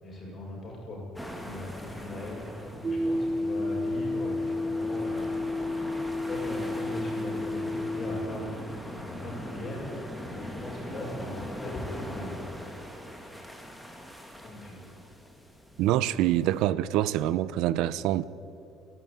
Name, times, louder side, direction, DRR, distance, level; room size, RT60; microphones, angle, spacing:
voice 1, 0.0-1.0 1.4-5.4 6.3-12.5 14.4-14.8, left 1 dB, 30° left, -1 dB, 7.5 m, -39 dB
sound 1, 1.2-16.6, equal, ahead, 2.4 m, -41 dB
sound 2, 2.8-8.2, left 2 dB, 20° right, 1.1 m, -31 dB
voice 2, 15.8-18.2, right 13 dB, 75° right, 17 dB, 0.7 m, -25 dB
29.0 x 12.0 x 9.2 m, 2.8 s
cardioid pair, 140°, 0 cm